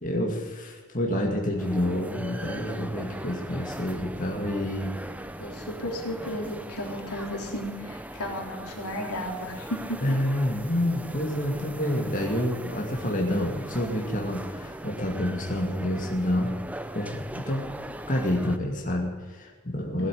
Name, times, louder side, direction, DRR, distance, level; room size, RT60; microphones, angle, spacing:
voice 1, 0.0-5.0 10.0-16.6 16.9-17.7 18.1-20.1, left 1 dB, 35° left, -1 dB, 2.2 m, -28 dB
sound 1, 1.6-18.6, right 1 dB, 5° right, 0.6 m, -39 dB
voice 2, 5.4-10.0 20.0-20.1, left 1 dB, 85° left, 0 dB, 3.7 m, -34 dB
18.0 x 8.1 x 9.5 m, 1.4 s
head